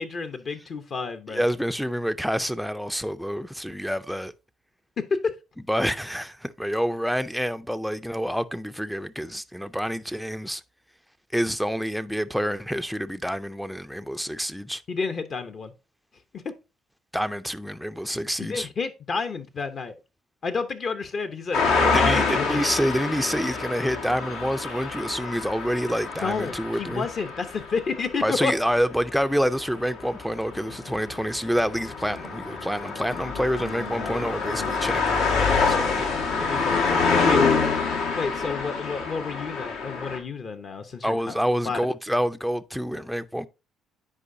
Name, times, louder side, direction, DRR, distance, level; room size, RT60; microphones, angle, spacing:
voice 1, 0.0-1.4 5.0-5.3 14.9-15.7 16.3-16.5 18.4-20.0 20.4-22.6 26.2-28.5 33.9-34.6 36.4-37.6 38.1-41.4 41.6-41.9, left 4 dB, 45° left, 0.7 m, -30 dB
voice 2, 1.3-4.3 5.7-10.6 11.3-14.8 17.1-18.7 21.9-27.1 28.2-36.0 41.0-43.5, equal, ahead, 0.4 m, -27 dB
sound 1, 21.5-40.2, left 4 dB, 85° left, 1.6 m, -26 dB
9.9 x 4.6 x 2.6 m
cardioid pair, 110°, 0 cm